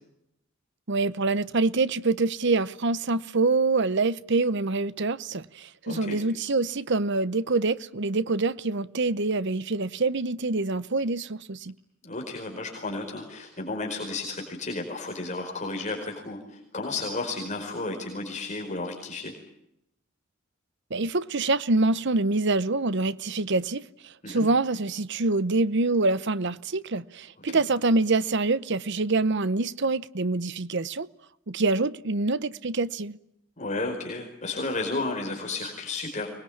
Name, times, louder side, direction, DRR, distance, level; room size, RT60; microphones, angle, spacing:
voice 1, 0.9-11.7 20.9-23.8 24.3-31.1 31.5-33.2, right 3 dB, 60° right, 0.9 m, -25 dB
voice 2, 5.8-6.2 12.0-19.3 24.2-24.5 27.5-27.6 33.6-36.3, left 3 dB, 35° left, 4.8 m, -33 dB
24.5 x 21.0 x 8.7 m
head